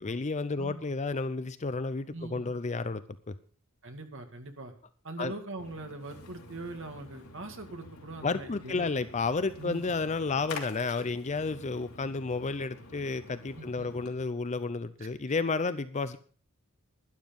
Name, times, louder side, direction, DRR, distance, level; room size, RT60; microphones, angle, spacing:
voice 1, 0.0-3.3 5.2-5.3 8.2-16.2, left 4 dB, 30° left, 0.5 m, -32 dB
voice 2, 2.1-2.5 3.8-4.7 5.0-8.9 9.6-9.9 13.5-14.0 15.0-15.1, right 2 dB, 60° right, 2.2 m, -42 dB
Splash splatter, 5.6-14.2, left 3 dB, 90° left, 3.0 m, -48 dB
12.0 x 11.5 x 5.3 m
head